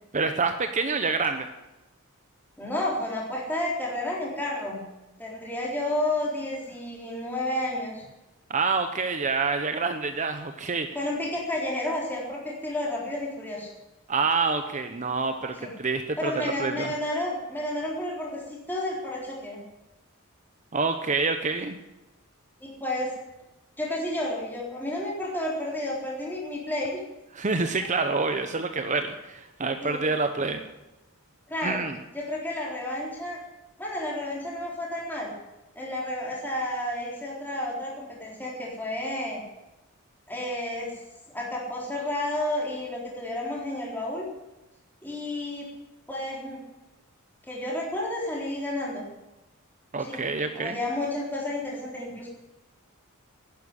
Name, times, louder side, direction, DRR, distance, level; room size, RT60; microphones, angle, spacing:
voice 1, 0.1-1.5 8.5-10.9 14.1-16.9 20.7-21.8 27.3-30.6 31.6-32.0 49.9-50.8, right 4 dB, 35° right, 7 dB, 0.8 m, -27 dB
voice 2, 2.6-4.8 5.2-8.1 10.9-13.7 15.6-15.7 16.2-19.6 22.6-23.1 23.8-27.0 29.8-30.1 31.5-31.8 32.1-33.4 33.8-35.3 35.8-39.4 40.3-40.9 41.3-44.3 45.0-45.7 46.1-46.6 47.5-49.1 50.0-50.2 50.5-52.3, left 1 dB, 10° left, -4 dB, 3.8 m, -31 dB
11.5 x 10.5 x 9.8 m, 1.0 s
head